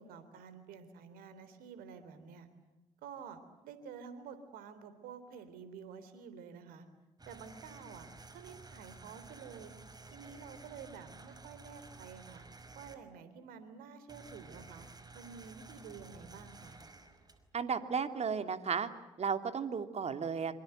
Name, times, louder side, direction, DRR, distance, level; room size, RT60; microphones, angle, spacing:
voice 1, 0.0-2.5 3.0-6.8 7.3-8.1 8.3-9.7 10.1-12.4 12.8-14.9 15.1-16.8, right 6 dB, 70° right, 12 dB, 3.7 m, -50 dB
sound 1, 7.2-12.9 14.1-17.7, right 3 dB, 25° right, 5.3 m, -53 dB
voice 2, 17.5-18.9 19.2-20.6, right 6 dB, 45° right, 8 dB, 2.9 m, -34 dB
26.0 x 26.0 x 8.0 m, 1.0 s
hypercardioid pair, 50°, 16 cm